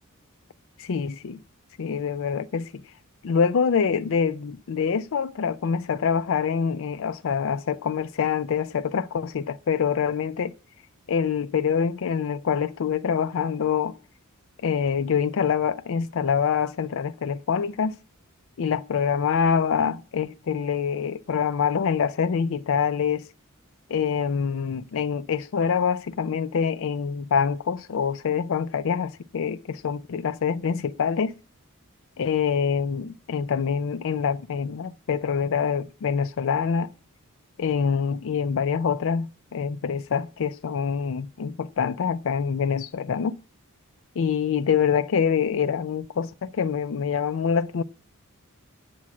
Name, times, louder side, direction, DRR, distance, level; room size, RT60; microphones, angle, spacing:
voice 1, 0.8-1.4 1.8-2.7 3.2-10.5 11.1-13.9 14.6-18.0 18.6-23.3 23.9-31.3 32.2-36.9 37.6-43.4 44.2-47.8, left 6 dB, 60° left, 0.4 m, -25 dB
8.5 x 6.2 x 8.3 m
head